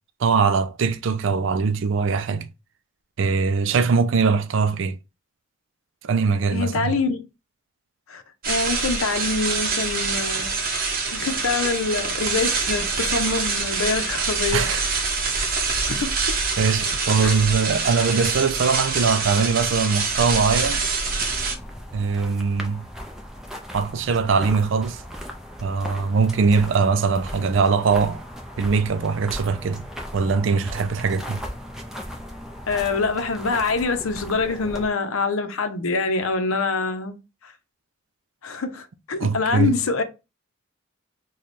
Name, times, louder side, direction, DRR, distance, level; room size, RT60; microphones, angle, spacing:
voice 1, 0.2-2.5 3.2-5.0 6.0-6.9 14.5-14.8 16.6-20.8 21.9-22.8 23.7-25.0 25.6-28.2 28.6-29.9 30.1-31.4 39.2-39.7, right 5 dB, 60° right, 0.4 m, -21 dB
voice 2, 6.5-7.2 8.1-10.7 11.1-14.7 15.9-16.4 17.2-17.4 32.7-37.2 37.4-37.5 38.4-40.0, left 4 dB, 80° left, 0.6 m, -25 dB
sound 1, 8.4-21.6, right 4 dB, 45° right, 0.8 m, -25 dB
sound 2, 21.0-34.9, equal, ahead, 0.5 m, -37 dB
3.2 x 2.3 x 4.0 m
head